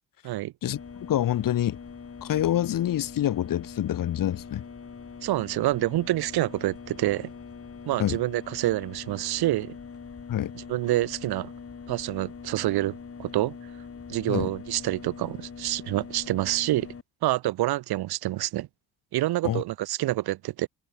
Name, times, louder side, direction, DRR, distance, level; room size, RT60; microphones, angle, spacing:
sound 1, 0.7-17.0, left 6 dB, 35° left, 3.2 m, -43 dB
voice 1, 1.1-1.8 2.2-4.6 8.0-8.2 10.3-10.5 14.3-14.5 19.4-19.6, left 12 dB, 55° left, 1.1 m, -26 dB
voice 2, 5.2-7.3 7.9-9.7 10.5-11.5 11.9-13.6 14.1-16.9 17.2-18.7 19.1-20.7, right 16 dB, 70° right, 1.0 m, -27 dB
cardioid pair, 80°, 39 cm